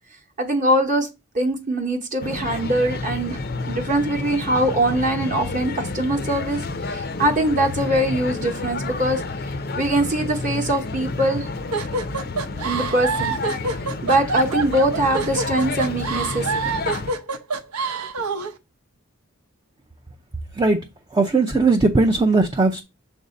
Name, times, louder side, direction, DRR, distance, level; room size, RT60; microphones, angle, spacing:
voice 1, 0.4-1.1 1.3-3.4 3.7-6.6 6.9-9.2 9.8-11.5 12.6-13.3 14.0-16.8, right 1 dB, 35° right, 0.9 m, -22 dB
sound 1, 2.2-17.1, left 3 dB, 45° left, 0.5 m, -30 dB
sound 2, 11.7-18.5, right 3 dB, 85° right, 0.8 m, -26 dB
voice 2, 21.1-22.8, right 3 dB, 20° right, 0.4 m, -18 dB
7.0 x 2.6 x 5.1 m
head